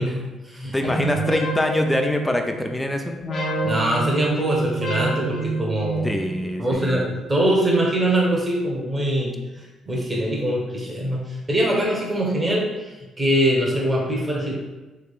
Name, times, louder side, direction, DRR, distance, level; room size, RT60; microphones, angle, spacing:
voice 1, 0.0-1.1 3.6-6.1 6.6-9.3 9.9-14.6, right 1 dB, 25° right, -3 dB, 1.1 m, -23 dB
voice 2, 0.7-3.1 6.0-7.1, left 1 dB, 10° left, 4 dB, 0.5 m, -24 dB
sound 1, 0.8-2.8 3.2-6.7, right 3 dB, 55° left, 1.0 m, -28 dB
3.5 x 3.2 x 2.4 m, 1.1 s
hypercardioid pair, 55°, 0 cm